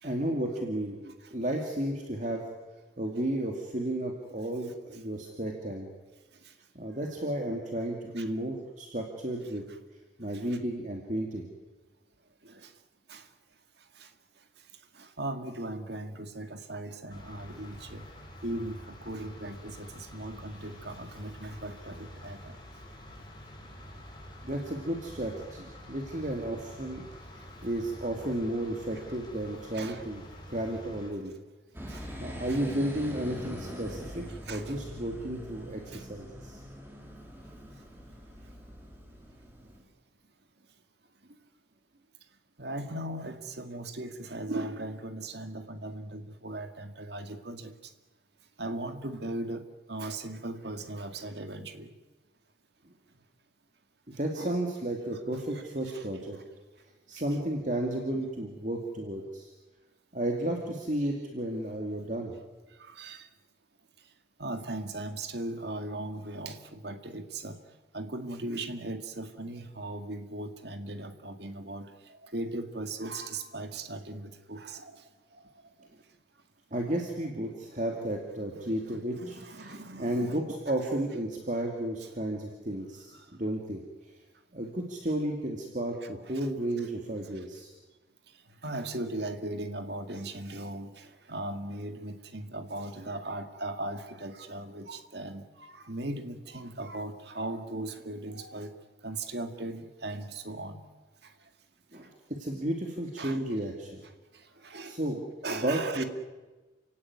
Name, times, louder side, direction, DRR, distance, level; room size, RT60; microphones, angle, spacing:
voice 1, 0.0-1.0 1.3-2.5 3.0-5.9 6.7-9.6 10.2-11.5 24.4-30.2 30.5-31.3 32.2-36.6 54.2-56.4 57.1-59.5 60.1-62.3 76.7-79.7 80.0-83.8 84.5-87.7 101.9-104.0 104.8-106.0, right 1 dB, 40° right, 1 dB, 2.5 m, -33 dB
voice 2, 1.0-1.3 6.4-6.5 8.2-8.3 10.3-10.4 12.4-12.7 13.1-13.3 14.0-14.1 14.9-18.1 18.4-22.5 29.7-30.0 31.9-32.1 32.5-32.6 34.3-34.7 35.9-36.0 42.6-47.7 48.6-51.9 54.4-54.6 55.5-56.0 56.3-56.4 61.9-62.0 62.8-63.3 64.4-67.6 67.9-75.4 78.5-80.6 86.3-86.5 87.4-87.5 88.6-98.7 99.0-100.8 103.2-103.4 104.3-105.0 105.4-106.0, right 2 dB, 60° right, 7 dB, 2.2 m, -38 dB
sound 1, 17.1-31.1, left 1 dB, 25° left, 6.0 m, -47 dB
sound 2, 31.7-39.8, equal, 10° right, 3.9 m, -43 dB
29.0 x 17.5 x 9.7 m, 1.2 s
head